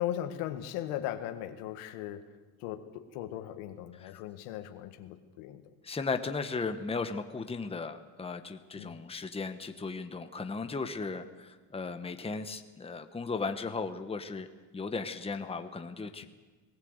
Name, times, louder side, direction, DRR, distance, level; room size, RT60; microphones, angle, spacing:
voice 1, 0.0-2.3 2.6-5.6 8.8-9.0, left 12 dB, 90° left, 8 dB, 1.8 m, -38 dB
voice 2, 5.8-14.5 14.7-16.3, left 4 dB, 10° left, 7 dB, 1.1 m, -36 dB
19.5 x 17.5 x 8.1 m, 1.3 s
cardioid pair, 120°, 49 cm